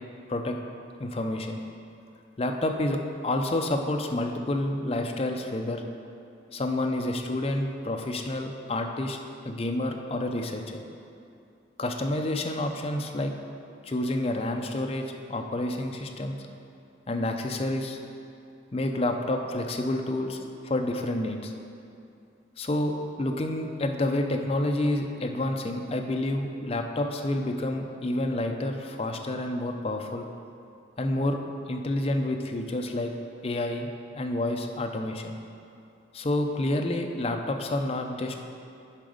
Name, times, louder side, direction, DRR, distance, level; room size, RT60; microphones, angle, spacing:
voice 1, 1.0-1.6 2.4-5.8 6.5-9.2 9.4-10.8 11.8-13.3 13.8-16.4 17.1-18.0 18.7-20.4 20.7-21.5 22.6-30.3 31.0-31.4 31.7-33.1 33.4-33.9 34.1-35.4 36.1-38.4, left 1 dB, 30° left, 4 dB, 0.5 m, -29 dB
7.4 x 5.1 x 5.0 m, 2.6 s
head